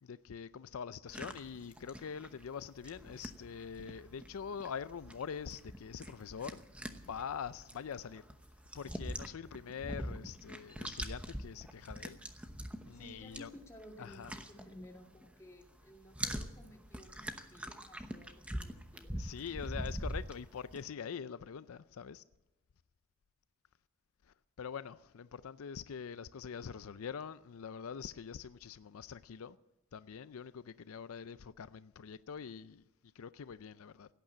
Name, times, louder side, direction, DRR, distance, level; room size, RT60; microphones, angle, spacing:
voice 1, 0.0-6.6 6.9-8.2 8.7-12.2 12.8-13.5 14.0-14.3 19.2-22.2 24.6-29.6 29.9-32.8 33.2-34.1, left 7 dB, 80° left, 0.4 m, -44 dB
sound 1, 1.1-15.3 15.6-20.8, equal, 5° right, 0.9 m, -44 dB
voice 2, 12.9-19.2, equal, 15° left, 2.1 m, -55 dB
17.0 x 9.2 x 8.6 m
head